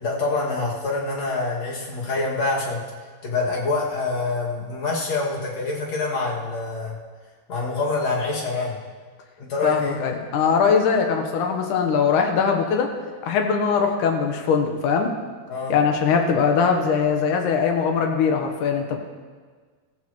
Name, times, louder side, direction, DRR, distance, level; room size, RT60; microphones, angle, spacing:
voice 1, 0.0-2.8 3.2-7.0 7.5-8.7 9.4-10.0 15.5-15.7, left 3 dB, 55° left, -4 dB, 3.4 m, -26 dB
voice 2, 9.6-12.9 13.2-15.1 15.7-19.0, left 6 dB, 70° left, 3 dB, 2.6 m, -21 dB
16.0 x 15.5 x 3.1 m, 1.5 s
omnidirectional pair, 3.8 m